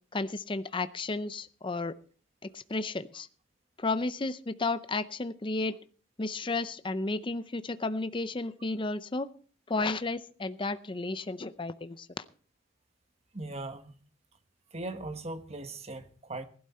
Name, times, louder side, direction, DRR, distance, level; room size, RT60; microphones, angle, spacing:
voice 1, 0.1-2.0 2.4-3.3 3.8-5.8 6.2-9.3 9.7-12.1, left 3 dB, 25° left, 0.6 m, -33 dB
voice 2, 13.3-13.9 14.7-16.4, right 2 dB, 30° right, 1.3 m, -39 dB
16.0 x 12.0 x 4.3 m
head